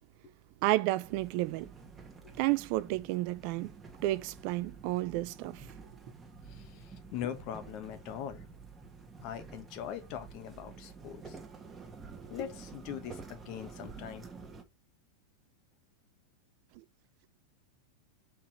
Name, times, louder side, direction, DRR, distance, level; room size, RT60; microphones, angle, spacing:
voice 1, 0.6-1.7 2.4-3.7 4.0-5.7 16.8-16.9, right 17 dB, 45° right, 0.4 m, -31 dB
sound 1, 1.0-14.6, right 4 dB, 15° right, 1.5 m, -50 dB
voice 2, 6.5-8.4 9.2-11.4 12.3-14.2, left 9 dB, 40° left, 1.3 m, -41 dB
5.6 x 4.8 x 4.4 m
figure-of-eight pair, 90°, 0 cm